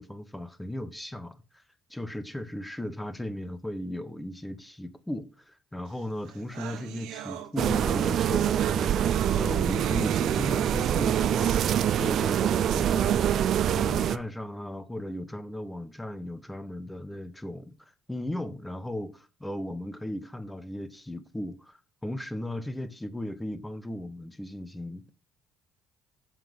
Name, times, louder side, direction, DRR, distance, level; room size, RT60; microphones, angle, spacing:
voice 1, 0.0-1.6 1.9-25.1, left 1 dB, 5° left, 1.1 m, -37 dB
sound 1, 6.0-6.1 6.2-13.8, right 10 dB, 75° right, 1.2 m, -41 dB
sound 2, 7.6-14.2, right 10 dB, 55° right, 0.5 m, -25 dB
7.4 x 5.7 x 5.5 m
cardioid pair, 100°, 0 cm